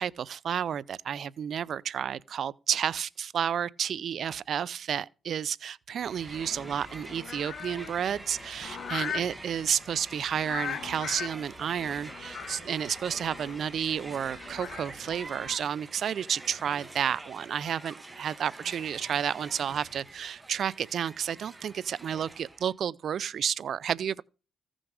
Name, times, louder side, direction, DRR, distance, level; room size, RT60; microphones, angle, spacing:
voice 1, 0.0-24.2, right 8 dB, 60° right, 0.5 m, -31 dB
sound 1, 6.0-15.6, left 8 dB, 65° left, 1.2 m, -41 dB
Crowd, 6.0-22.7, right 2 dB, 15° right, 2.0 m, -46 dB
15.0 x 6.2 x 4.8 m
cardioid pair, 90°, 0 cm